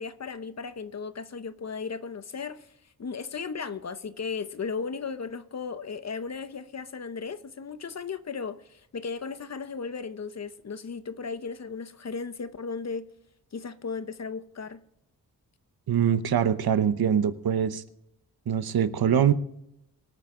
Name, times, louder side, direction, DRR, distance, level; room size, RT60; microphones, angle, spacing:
voice 1, 0.0-2.7 3.0-13.1 13.5-14.8, left 5 dB, 45° left, 0.8 m, -36 dB
voice 2, 15.9-17.8 18.5-19.3, right 8 dB, 75° right, 0.9 m, -23 dB
24.0 x 9.1 x 3.8 m
wide cardioid pair, 125°, 37 cm